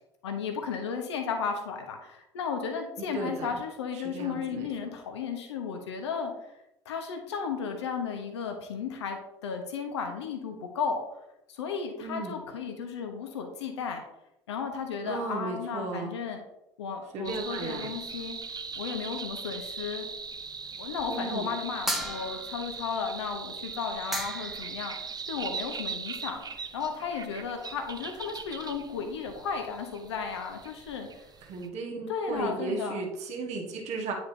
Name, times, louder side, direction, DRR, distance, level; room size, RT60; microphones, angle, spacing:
voice 1, 0.2-6.5 6.8-11.0 11.5-14.0 14.5-16.4 16.8-18.4 18.7-20.1 20.8-26.4 26.7-31.3 32.1-33.1, left 6 dB, 75° left, 4 dB, 1.1 m, -34 dB
voice 2, 3.1-3.6 3.9-4.7 12.0-12.4 15.0-16.1 17.1-17.9 21.1-21.5 31.4-34.1, right 3 dB, 50° right, 0 dB, 1.5 m, -35 dB
sound 1, 17.2-31.7, right 5 dB, 30° right, 0.8 m, -40 dB
sound 2, 21.9-22.7 23.8-23.9 24.1-24.7, equal, ahead, 1.1 m, -33 dB
9.5 x 4.9 x 2.8 m, 0.85 s
figure-of-eight pair, 60°, 14 cm